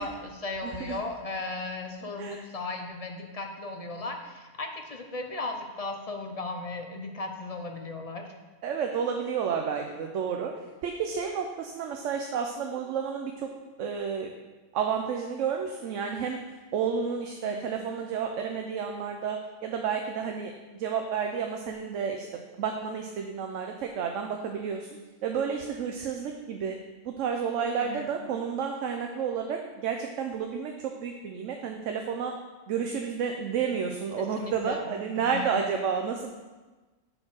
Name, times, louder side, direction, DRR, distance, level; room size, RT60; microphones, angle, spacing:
voice 1, 0.0-8.2 17.4-17.7 27.8-28.1 34.2-34.9 35.2-35.6, left 3 dB, 40° left, 3 dB, 0.6 m, -36 dB
voice 2, 0.6-1.0 2.2-2.4 8.6-10.5 10.8-13.5 13.8-14.3 14.7-16.4 16.7-20.5 20.8-22.3 22.6-24.9 25.2-26.8 27.0-30.7 31.0-32.3 32.7-36.3, right 6 dB, 70° right, 3 dB, 1.0 m, -31 dB
7.6 x 4.4 x 6.2 m, 1.2 s
omnidirectional pair, 1.4 m